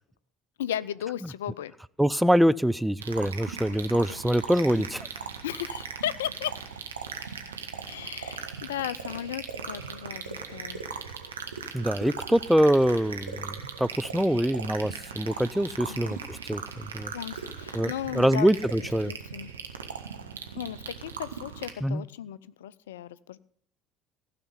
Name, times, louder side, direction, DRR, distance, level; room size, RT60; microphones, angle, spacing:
voice 1, 0.6-1.7 4.1-4.2 5.4-6.6 7.8-10.8 15.9-16.1 17.1-18.5 19.1-19.5 20.5-23.4, left 11 dB, 70° left, 18 dB, 0.4 m, -35 dB
voice 2, 2.0-5.1 11.7-17.1 17.7-19.1 21.8-22.0, equal, 5° right, 17 dB, 0.4 m, -24 dB
sound 1, 3.0-21.7, right 6 dB, 75° right, 1.1 m, -39 dB
15.5 x 5.8 x 9.7 m, 0.63 s
figure-of-eight pair, 60°, 0 cm